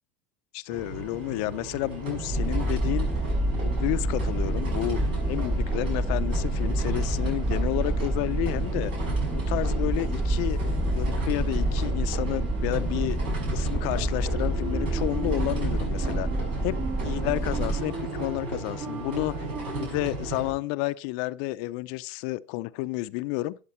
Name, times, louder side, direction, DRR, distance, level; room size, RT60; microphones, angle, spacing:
voice 1, 0.5-3.1 3.5-5.0 5.3-8.9 9.3-10.6 10.9-13.2 13.5-16.3 16.6-19.3 19.7-23.6, left 19 dB, 65° left, 0.5 m, -31 dB
sound 1, 0.7-20.5, right 2 dB, 85° right, 6.0 m, -35 dB
sound 2, 2.3-17.8, right 1 dB, 10° right, 2.0 m, -28 dB
sound 3, 14.3-19.9, right 4 dB, 55° right, 2.2 m, -38 dB
12.5 x 7.3 x 4.3 m
supercardioid pair, 105°, 5 cm